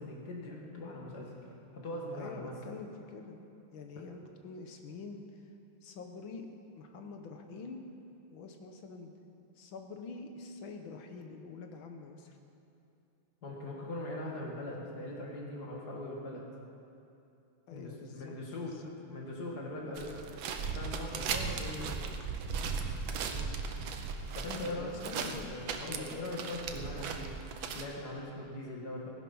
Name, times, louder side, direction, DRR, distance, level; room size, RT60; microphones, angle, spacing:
voice 1, 0.0-1.3 1.7-2.5 4.0-4.1 13.4-16.5 17.7-18.8 19.1-22.2 24.3-24.9 25.2-27.3 27.7-29.1, left 1 dB, 50° left, -2 dB, 2.5 m, -41 dB
voice 2, 2.1-3.4 3.7-5.2 5.8-6.5 6.8-7.8 8.3-9.1 9.6-12.4 17.7-18.9 23.3-25.5, left 4 dB, 70° left, 5 dB, 1.8 m, -46 dB
sound 1, 20.0-27.8, right 5 dB, 70° right, 1.6 m, -37 dB
16.5 x 10.5 x 5.5 m, 2.7 s
omnidirectional pair, 2.3 m